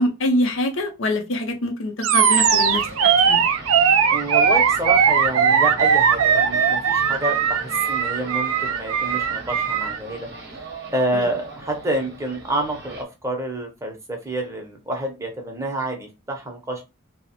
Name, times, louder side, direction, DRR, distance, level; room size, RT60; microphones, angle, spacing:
voice 1, 0.0-3.4, left 1 dB, 75° left, 0.6 m, -24 dB
Animal, 2.0-10.0, right 7 dB, 90° right, 0.4 m, -19 dB
sound 1, 2.3-13.0, right 3 dB, 50° right, 0.7 m, -39 dB
voice 2, 4.1-16.8, right 1 dB, 15° right, 0.6 m, -28 dB
2.9 x 2.0 x 2.8 m
head